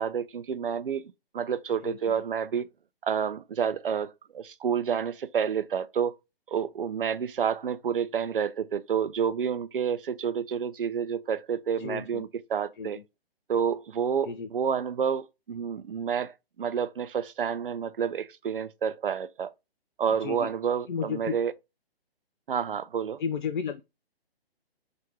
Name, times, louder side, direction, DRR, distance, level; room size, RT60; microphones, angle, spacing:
voice 1, 0.0-2.7 3.0-6.1 6.5-13.0 13.5-19.5 20.0-21.5 22.5-23.2, right 7 dB, 60° right, 0.5 m, -29 dB
voice 2, 1.8-2.2 11.8-12.2 12.8-12.9 14.2-14.5 20.2-20.5 20.9-21.4 23.2-23.8, left 7 dB, 55° left, 0.4 m, -33 dB
5.7 x 2.6 x 2.8 m
figure-of-eight pair, 135°, 31 cm